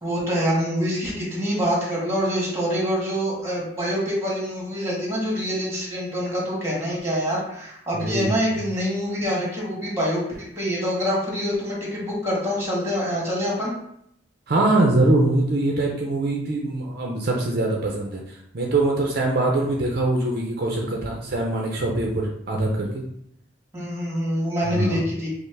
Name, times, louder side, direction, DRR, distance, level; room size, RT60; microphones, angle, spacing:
voice 1, 0.0-10.2 10.6-13.7 23.7-25.3, equal, 15° right, -4 dB, 1.5 m, -25 dB
voice 2, 7.9-8.3 14.5-18.2 18.5-23.0 24.6-25.0, right 2 dB, 55° right, -1 dB, 0.6 m, -23 dB
5.3 x 2.1 x 3.3 m, 0.73 s
head